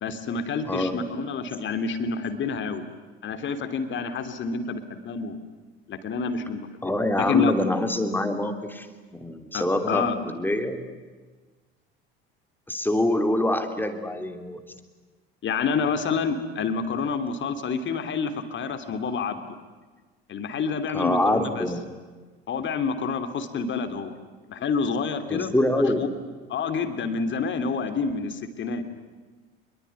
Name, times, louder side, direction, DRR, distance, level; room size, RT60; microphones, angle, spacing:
voice 1, 0.0-2.8 3.2-5.4 5.9-6.9 7.2-7.5 9.5-10.2 15.4-19.5 20.3-21.6 22.5-24.1 24.5-26.1 26.5-28.8, left 5 dB, 35° left, 9 dB, 3.0 m, -28 dB
voice 2, 0.7-1.0 6.8-8.9 9.1-10.8 12.7-14.6 20.9-21.8 25.3-26.1, left 1 dB, 5° left, 7 dB, 3.1 m, -25 dB
27.0 x 22.0 x 9.7 m, 1.3 s
figure-of-eight pair, 65°, 31 cm